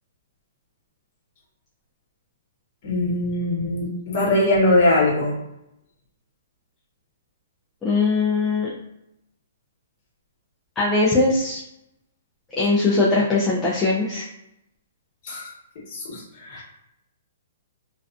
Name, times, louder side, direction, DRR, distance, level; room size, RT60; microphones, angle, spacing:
voice 1, 2.8-5.3 15.2-15.5 15.9-16.6, left 1 dB, 45° left, -4 dB, 1.1 m, -21 dB
voice 2, 7.8-8.7 10.8-11.6 12.6-14.2, left 3 dB, 10° left, -6 dB, 0.4 m, -20 dB
2.4 x 2.3 x 2.4 m, 0.83 s
hypercardioid pair, 160°, 0 cm